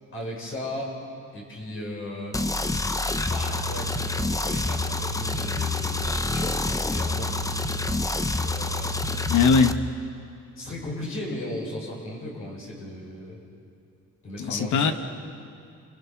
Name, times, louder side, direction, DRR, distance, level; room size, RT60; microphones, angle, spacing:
voice 1, 0.1-1.0 1.3-2.4 3.3-7.5 7.9-8.9 10.6-13.4 14.2-14.9, left 1 dB, 45° left, -3 dB, 6.5 m, -36 dB
sound 1, 2.3-9.7, left 2 dB, 10° left, 0.8 m, -27 dB
voice 2, 9.3-9.8 14.4-14.9, left 5 dB, 80° left, 8 dB, 1.5 m, -20 dB
29.5 x 24.5 x 6.0 m, 2.5 s
cardioid pair, 135°, 30 cm